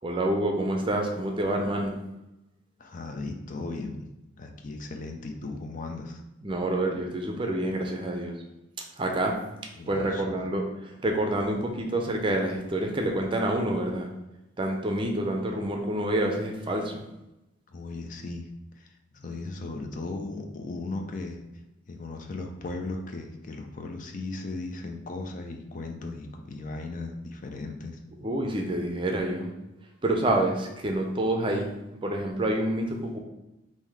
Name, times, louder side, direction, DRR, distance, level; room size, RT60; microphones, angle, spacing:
voice 1, 0.0-2.0 6.4-8.4 9.0-9.4 9.9-10.6 11.0-14.1 14.6-17.0 28.2-29.5 30.0-31.7 32.0-33.2, right 1 dB, 25° right, 2 dB, 0.5 m, -27 dB
voice 2, 2.8-4.1 4.4-6.2 9.8-10.2 17.7-18.5 18.8-21.4 21.9-28.0, left 2 dB, 40° left, 4 dB, 0.4 m, -37 dB
3.7 x 2.7 x 4.7 m, 0.93 s
head